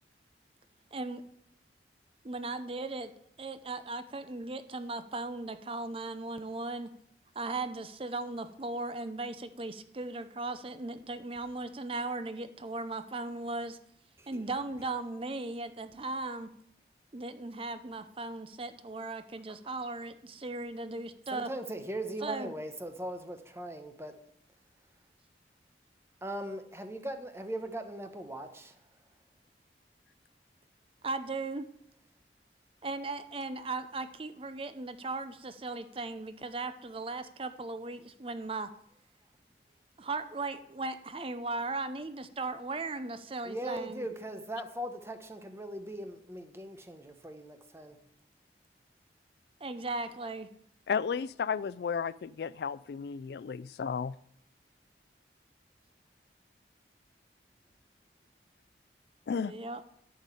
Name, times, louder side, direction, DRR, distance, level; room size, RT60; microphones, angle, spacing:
voice 1, 0.9-1.2 2.2-3.1 3.4-6.9 7.3-13.8 14.3-16.5 17.1-21.5 22.2-22.5 31.0-31.7 32.8-38.7 40.0-44.1 49.6-50.5 59.4-59.8, right 3 dB, 30° right, 0.6 m, -37 dB
voice 2, 21.3-24.2 26.2-28.8 43.4-48.0, right 1 dB, 15° right, 1.0 m, -39 dB
voice 3, 50.9-54.1 59.3-59.5, left 6 dB, 65° left, 0.3 m, -33 dB
11.5 x 5.3 x 8.3 m
head